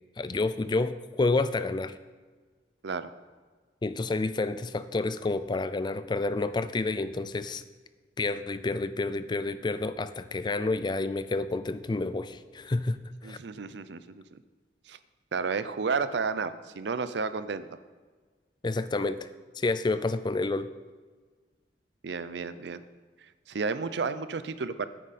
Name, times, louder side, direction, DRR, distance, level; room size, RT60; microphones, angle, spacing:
voice 1, 0.2-2.0 3.8-7.6 8.2-13.4 18.6-19.3 19.6-20.7, left 3 dB, 25° left, 13 dB, 0.4 m, -29 dB
voice 2, 13.2-14.4 14.9-15.0 15.3-17.7 22.0-22.8 23.5-24.9, right 4 dB, 75° right, 13 dB, 0.5 m, -32 dB
9.9 x 9.3 x 4.2 m, 1.4 s
head